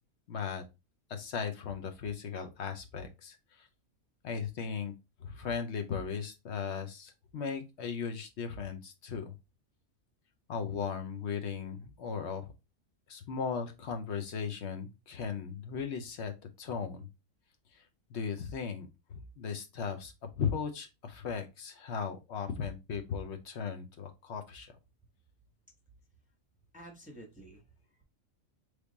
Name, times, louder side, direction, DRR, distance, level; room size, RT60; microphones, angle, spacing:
voice 1, 0.3-0.6 1.1-3.7 4.2-4.9 5.2-9.3 10.5-12.5 13.1-17.1 17.7-24.7, left 6 dB, 60° left, 6 dB, 1.0 m, -37 dB
voice 2, 26.7-28.0, right 1 dB, 5° right, 1 dB, 0.8 m, -51 dB
3.3 x 3.3 x 3.9 m, 0.24 s
omnidirectional pair, 1.4 m